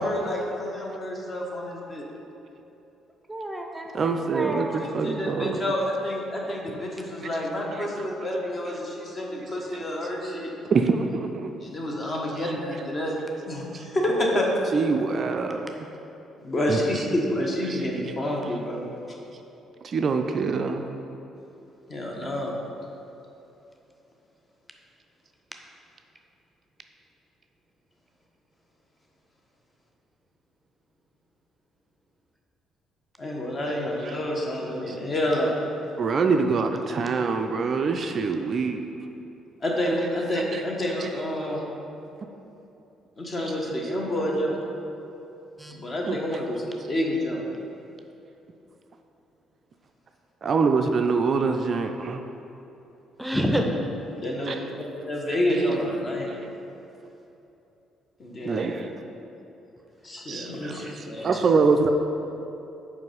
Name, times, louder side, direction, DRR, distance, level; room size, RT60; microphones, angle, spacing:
voice 1, 0.0-2.1 4.8-10.5 11.6-13.2 13.5-14.5 16.4-18.9 21.9-22.6 33.2-35.5 39.6-41.7 43.2-44.6 45.7-47.4 54.2-56.3 58.2-58.7 60.0-61.5, left 1 dB, 35° left, -1 dB, 1.2 m, -28 dB
voice 2, 3.3-4.9 45.6-45.8 53.2-53.6, equal, 10° right, 2 dB, 0.7 m, -29 dB
voice 3, 3.9-5.6 7.2-7.4 7.7-8.0 8.6-8.8 10.7-11.5 12.4-12.9 13.7-13.9 14.3-14.4 14.7-15.6 16.7-17.1 17.6-18.6 19.8-20.8 22.2-22.4 33.7-34.2 34.6-35.0 36.0-38.8 39.8-41.6 43.5-44.3 46.0-46.4 50.4-52.2 54.4-54.7 55.3-56.0 56.2-56.4 58.4-58.9 60.3-61.9, right 4 dB, 45° right, 5 dB, 0.3 m, -26 dB
5.2 x 4.8 x 5.3 m, 2.9 s
figure-of-eight pair, 45°, 0 cm